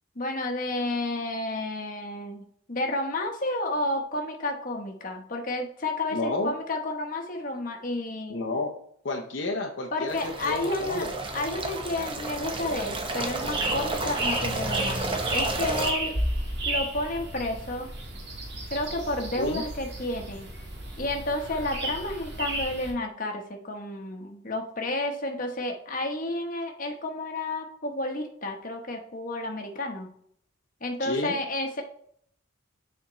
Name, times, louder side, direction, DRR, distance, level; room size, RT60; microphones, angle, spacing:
voice 1, 0.2-8.4 9.9-11.1 11.3-16.1 16.6-17.9 18.7-20.5 21.0-30.1 30.8-31.8, left 2 dB, 40° left, 3 dB, 1.0 m, -31 dB
voice 2, 6.1-6.5 8.3-8.7 9.0-11.1 19.4-19.6 31.0-31.3, left 2 dB, 65° left, 0 dB, 0.7 m, -30 dB
sound 1, 10.1-15.9, right 2 dB, 25° right, 0.7 m, -31 dB
sound 2, 13.4-22.9, right 1 dB, 55° right, 1.6 m, -33 dB
7.0 x 4.3 x 3.1 m, 0.64 s
head